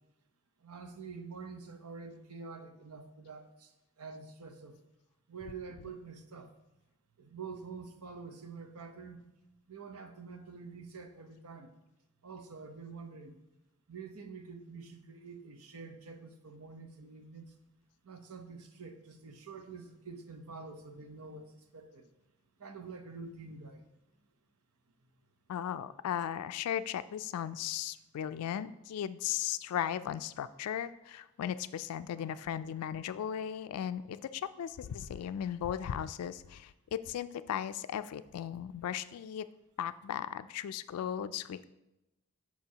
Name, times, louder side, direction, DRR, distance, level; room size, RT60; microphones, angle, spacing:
voice 1, 0.6-3.7 4.0-4.8 5.3-6.5 7.2-9.3 9.7-11.7 12.2-13.4 13.9-17.5 18.0-22.1 22.6-23.8, right 4 dB, 85° right, 6 dB, 0.8 m, -47 dB
voice 2, 25.5-39.5 39.8-41.7, left 9 dB, 80° left, 14 dB, 0.3 m, -37 dB
8.9 x 5.9 x 2.8 m, 0.94 s
head